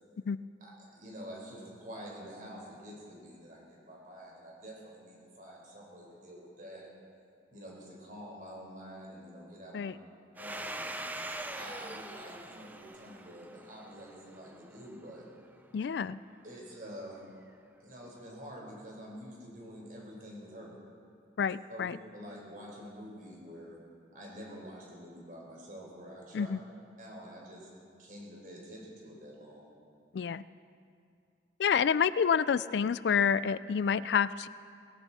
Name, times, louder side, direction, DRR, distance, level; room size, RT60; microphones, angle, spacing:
voice 1, 0.6-6.9 7.5-9.9 10.4-10.9 11.6-15.3 16.4-17.2 17.8-20.8 21.7-23.8 24.1-26.5 27.0-27.7 28.0-29.7, equal, 45° right, -3 dB, 4.4 m, -47 dB
Domestic sounds home sounds, 10.4-14.8, right 1 dB, 10° right, 0.5 m, -42 dB
voice 2, 15.7-16.2 21.4-22.0 26.3-26.6 30.1-30.4 31.6-34.5, left 7 dB, 70° left, 17 dB, 0.3 m, -28 dB
19.0 x 17.0 x 4.2 m, 2.3 s
head